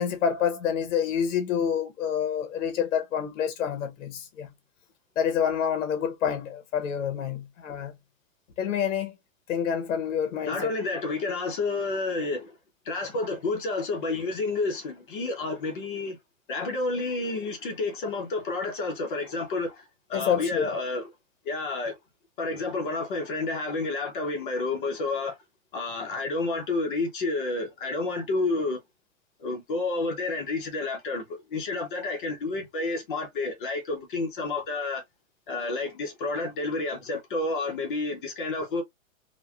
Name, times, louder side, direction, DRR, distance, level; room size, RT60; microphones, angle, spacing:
voice 1, 0.0-4.5 5.2-7.9 8.6-9.1 9.5-10.7 20.1-20.7, left 8 dB, 65° left, 0.8 m, -27 dB
voice 2, 10.4-12.5 12.8-16.2 16.5-21.1 21.4-21.9 22.4-25.4 25.7-28.8 29.4-35.0 35.5-38.8, left 3 dB, 40° left, 0.8 m, -30 dB
3.0 x 2.2 x 2.3 m
hypercardioid pair, 170°, 40 cm